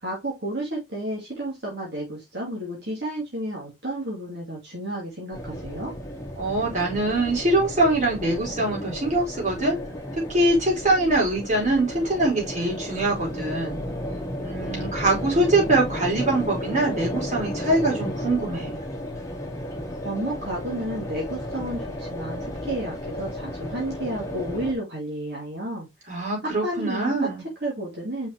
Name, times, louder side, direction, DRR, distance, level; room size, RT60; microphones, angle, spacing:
voice 1, 0.0-5.9 20.0-25.9 26.4-27.3 27.6-28.3, right 1 dB, 65° right, 2.7 m, -31 dB
sound 1, 5.3-24.7, left 1 dB, 20° left, 2.0 m, -33 dB
voice 2, 6.4-9.8 10.3-13.8 14.4-18.8 26.1-27.4, right 2 dB, 45° right, 4.3 m, -23 dB
5.7 x 5.7 x 2.9 m
head